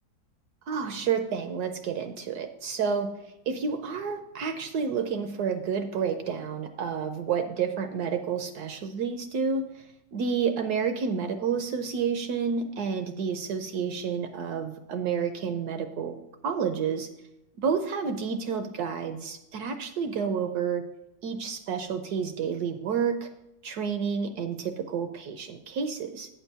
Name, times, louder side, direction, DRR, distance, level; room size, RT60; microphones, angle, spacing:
voice 1, 0.7-3.1 3.5-9.9 10.1-16.2 16.4-17.1 17.6-20.8 21.2-23.3 23.6-26.3, right 6 dB, 70° right, 7 dB, 1.0 m, -30 dB
8.6 x 4.5 x 6.7 m, 0.88 s
omnidirectional pair, 2.1 m